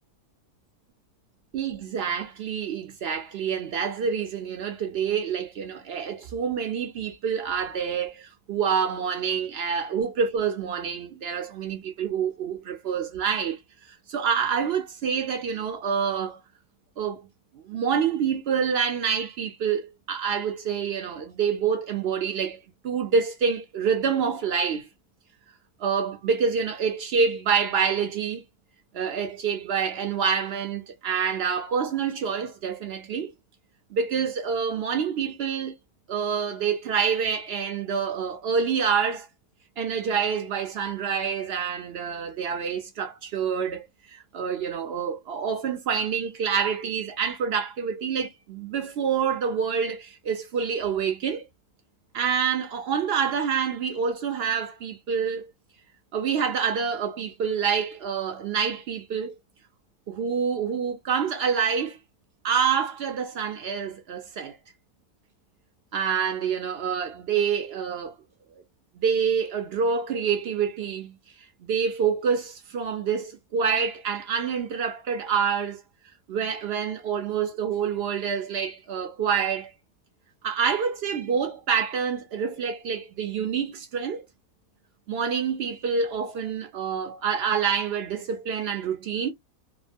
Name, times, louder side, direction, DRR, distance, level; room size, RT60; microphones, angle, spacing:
voice 1, 1.5-13.6 14.1-16.4 17.0-17.2 17.6-22.6 22.8-24.9 25.8-28.4 28.9-33.3 33.9-35.7 36.1-39.3 39.8-51.5 52.1-55.5 56.1-59.3 60.1-62.0 62.4-64.6 65.9-68.1 69.0-71.2 71.6-75.8 76.3-79.7 80.4-84.2 85.1-89.3, right 6 dB, 65° right, 0.6 m, -27 dB
2.8 x 2.1 x 2.4 m
omnidirectional pair, 1.5 m